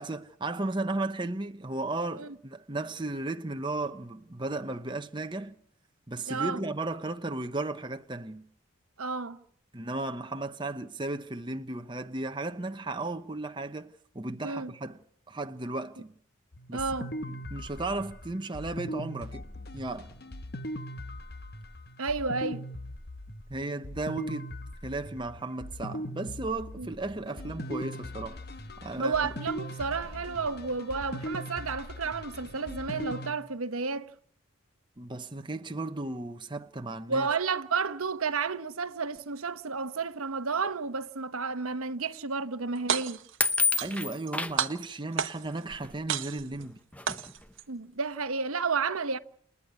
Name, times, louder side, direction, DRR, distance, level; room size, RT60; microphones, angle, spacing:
voice 1, 0.0-5.6 6.1-8.4 9.7-15.0 15.3-16.1 16.7-16.8 17.2-19.4 19.7-20.1 23.5-24.5 24.8-28.4 28.8-29.3 35.0-37.3 43.8-46.8, right 2 dB, 20° right, 0.9 m, -35 dB
voice 2, 6.3-6.6 9.0-9.4 14.4-14.7 16.7-17.1 22.0-22.6 26.8-26.9 29.0-34.1 37.1-43.2 47.7-49.2, right 4 dB, 80° right, 1.1 m, -31 dB
sound 1, 16.5-33.3, equal, 45° left, 1.2 m, -40 dB
sound 2, 42.8-43.4 43.8-44.3 44.6-45.6 46.1-46.6 47.1-47.6, right 7 dB, 60° right, 1.2 m, -31 dB
sound 3, 43.4-44.6 45.7-45.9 46.6-46.7 46.9-47.3, left 4 dB, 5° left, 0.7 m, -28 dB
29.5 x 9.8 x 9.6 m
head